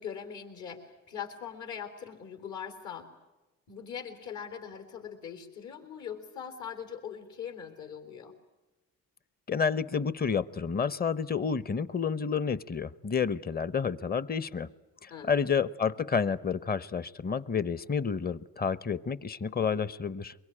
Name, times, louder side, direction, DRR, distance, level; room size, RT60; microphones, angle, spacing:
voice 1, 0.0-3.1 3.7-8.4 15.1-15.5, left 8 dB, 70° left, 3.7 m, -41 dB
voice 2, 9.5-14.7 15.0-20.3, left 6 dB, 30° left, 0.9 m, -30 dB
23.5 x 22.5 x 9.9 m
cardioid pair, 90°, 30 cm